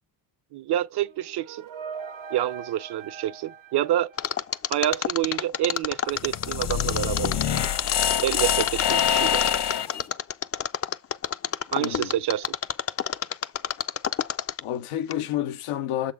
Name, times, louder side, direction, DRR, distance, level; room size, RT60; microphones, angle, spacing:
voice 1, 0.5-1.7 2.3-4.1 4.7-7.6 8.2-9.4 11.7-12.5, right 12 dB, 55° right, 0.6 m, -28 dB
sound 1, 0.9-4.9, right 6 dB, 80° right, 1.1 m, -41 dB
Mechanisms, 4.2-14.8 15.1-15.2, left 8 dB, 30° left, 0.4 m, -28 dB
sound 2, 6.2-10.0, left 9 dB, 55° left, 1.0 m, -25 dB
voice 2, 11.8-12.2 14.6-16.1, left 12 dB, 90° left, 0.8 m, -29 dB
6.9 x 4.1 x 4.6 m
cardioid pair, 70°, 48 cm